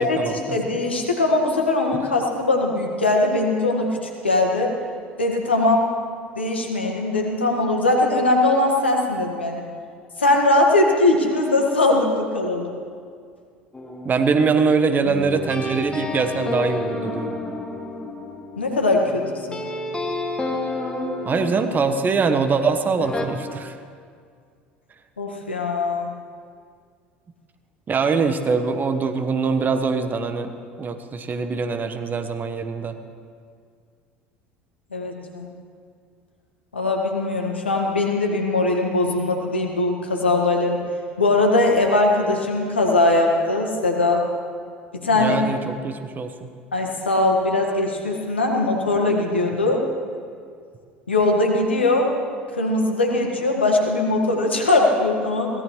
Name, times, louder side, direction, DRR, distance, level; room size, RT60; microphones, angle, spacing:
voice 1, 0.0-0.6 14.0-17.3 21.2-23.8 27.9-30.5 30.8-33.0 45.2-46.5, right 4 dB, 30° right, 8 dB, 1.2 m, -23 dB
voice 2, 0.5-4.7 5.2-5.8 6.3-9.6 10.2-12.7 18.6-19.6 25.2-26.1 34.9-35.5 36.7-40.8 41.2-44.3 44.9-45.4 46.7-49.8 51.1-52.1 52.5-55.6, left 2 dB, 90° left, 1 dB, 1.7 m, -20 dB
sound 1, 13.7-22.6 23.0-23.3, left 2 dB, 15° left, 1.8 m, -31 dB
23.5 x 17.0 x 3.2 m, 2.1 s
figure-of-eight pair, 65°, 6 cm